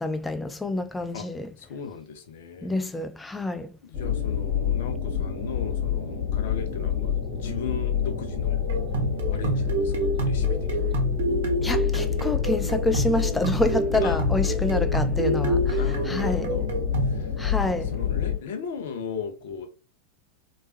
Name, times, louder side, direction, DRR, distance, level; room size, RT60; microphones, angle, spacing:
voice 1, 0.0-1.5 2.6-3.7 11.6-16.5 17.4-17.9, left 2 dB, 10° left, 0.4 m, -28 dB
voice 2, 1.6-2.7 3.8-8.6 9.3-11.0 14.0-14.2 15.7-16.7 17.0-17.3 17.8-19.7, left 5 dB, 55° left, 0.7 m, -37 dB
sound 1, 3.9-18.4, left 8 dB, 30° left, 2.0 m, -27 dB
sound 2, 8.7-17.2, right 4 dB, 55° right, 0.7 m, -28 dB
3.2 x 3.1 x 2.7 m
figure-of-eight pair, 90°, 0 cm